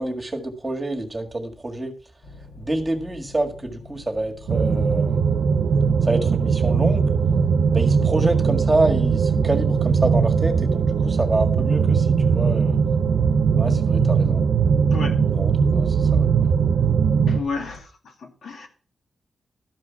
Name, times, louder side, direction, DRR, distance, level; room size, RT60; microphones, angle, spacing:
voice 1, 0.0-2.0 2.6-5.4 6.0-7.1 7.7-12.8 13.6-14.4 15.3-16.5, right 2 dB, 15° right, 1.8 m, -27 dB
sound 1, 2.2-17.8, left 3 dB, 55° left, 1.9 m, -44 dB
sound 2, 4.5-17.4, right 6 dB, 80° right, 0.7 m, -20 dB
voice 2, 14.9-15.2 17.3-18.7, left 4 dB, 80° left, 2.2 m, -32 dB
13.0 x 5.0 x 7.2 m
wide cardioid pair, 135°, 0 cm